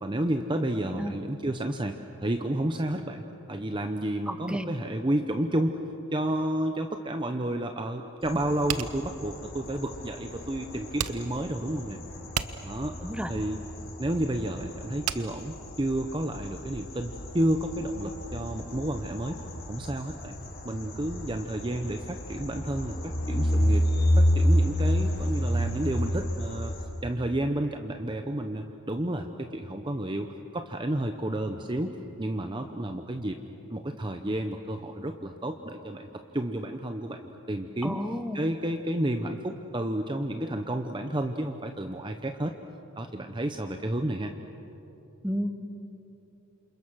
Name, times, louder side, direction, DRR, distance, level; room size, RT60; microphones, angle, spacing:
voice 1, 0.0-5.8 6.1-12.0 12.6-12.9 13.3-13.6 14.0-19.4 19.7-20.4 20.6-23.9 24.2-26.7 27.0-33.4 33.7-38.0 38.3-42.5 42.9-44.3, right 1 dB, 20° right, 6 dB, 0.8 m, -31 dB
voice 2, 4.3-4.7 13.0-13.3 37.8-38.4 45.2-45.6, equal, 5° right, 8 dB, 1.1 m, -31 dB
sound 1, 8.2-26.8, equal, 45° left, 4.2 m, -30 dB
sound 2, 8.7-16.3, right 8 dB, 85° right, 0.9 m, -36 dB
28.0 x 27.5 x 6.3 m, 2.9 s
head